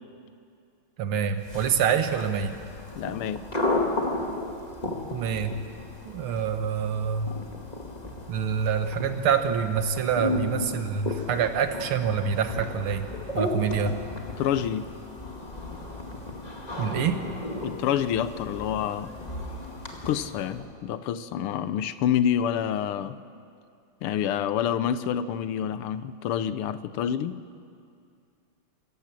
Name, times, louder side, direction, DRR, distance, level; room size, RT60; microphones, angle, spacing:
voice 1, 1.0-2.6 5.1-5.6 6.1-7.3 8.3-14.1 16.8-17.2, right 7 dB, 75° right, 8 dB, 2.0 m, -26 dB
sound 1, 1.4-20.7, left 2 dB, 20° left, 2.1 m, -34 dB
voice 2, 3.0-3.4 14.4-14.9 17.6-19.1 20.0-23.2 24.0-27.4, left 9 dB, 85° left, 14 dB, 1.6 m, -27 dB
26.0 x 15.0 x 7.5 m, 2.4 s
omnidirectional pair, 2.4 m